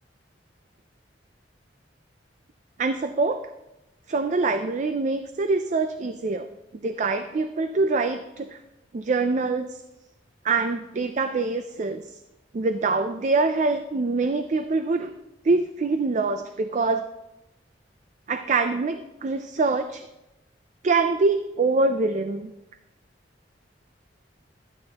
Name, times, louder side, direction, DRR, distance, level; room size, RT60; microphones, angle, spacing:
voice 1, 2.8-3.5 4.1-6.5 6.8-8.6 8.9-9.8 10.4-12.0 12.5-15.1 15.4-17.1 18.3-20.0 20.8-22.5, right 3 dB, 40° right, 9 dB, 0.4 m, -24 dB
12.5 x 8.5 x 2.9 m, 0.93 s
head